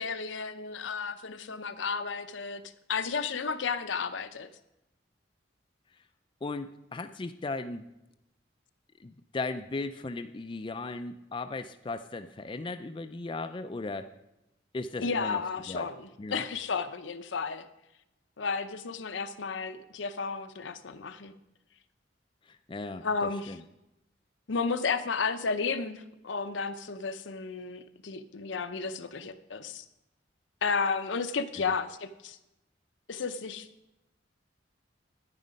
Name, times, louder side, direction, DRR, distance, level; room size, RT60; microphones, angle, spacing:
voice 1, 0.0-2.6 2.9-4.5 15.0-17.6 18.4-21.3 23.0-23.6 24.5-29.8 30.6-32.4 33.1-33.7, left 5 dB, 85° left, 9 dB, 0.7 m, -33 dB
voice 2, 6.4-7.8 9.0-14.1 14.7-15.4 15.7-15.9 16.2-16.4 22.5-23.6 31.6-31.7, left 3 dB, 25° left, 8 dB, 0.4 m, -37 dB
9.9 x 9.4 x 5.2 m, 0.92 s
head